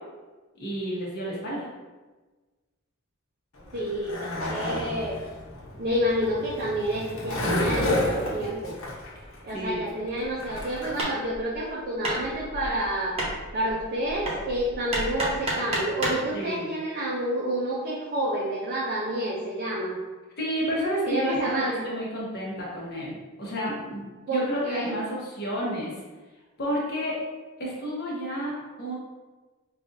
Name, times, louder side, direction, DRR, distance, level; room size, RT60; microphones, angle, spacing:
voice 1, 0.5-1.7 9.5-9.8 16.3-16.6 20.4-24.0 24.3-26.0 26.6-27.2 27.6-28.9, equal, 50° left, -5 dB, 1.2 m, -30 dB
Skateboard, 3.6-11.0, left 1 dB, 75° left, 1.0 m, -31 dB
voice 2, 3.7-5.2 5.8-8.8 9.4-13.2 13.5-20.0 21.1-21.8 24.3-25.0, right 1 dB, 45° right, -5 dB, 0.6 m, -29 dB
Hammer, 10.3-16.3, right 1 dB, 30° right, 0.9 m, -32 dB
5.3 x 2.5 x 2.7 m, 1.3 s
head